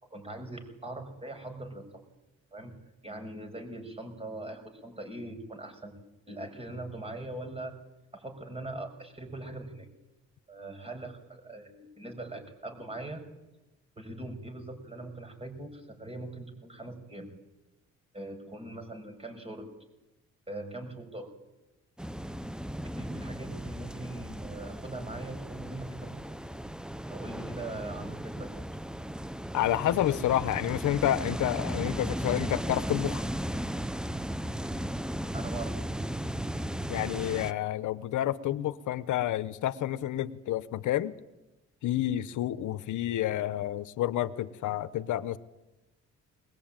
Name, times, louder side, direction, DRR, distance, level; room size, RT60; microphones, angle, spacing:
voice 1, 0.0-2.0 2.5-2.7 3.0-6.0 6.3-7.7 8.1-9.9 10.5-13.3 14.0-17.3 18.1-19.7 20.5-21.3 23.0-26.1 27.1-28.7 35.3-35.8, right 2 dB, 20° right, 6 dB, 6.1 m, -41 dB
sound 1, 22.0-37.5, equal, 5° right, 0.7 m, -36 dB
voice 2, 29.5-33.2 36.9-41.1 41.8-45.4, left 12 dB, 75° left, 13 dB, 1.0 m, -29 dB
22.0 x 20.5 x 9.0 m, 1.0 s
cardioid pair, 90°, 30 cm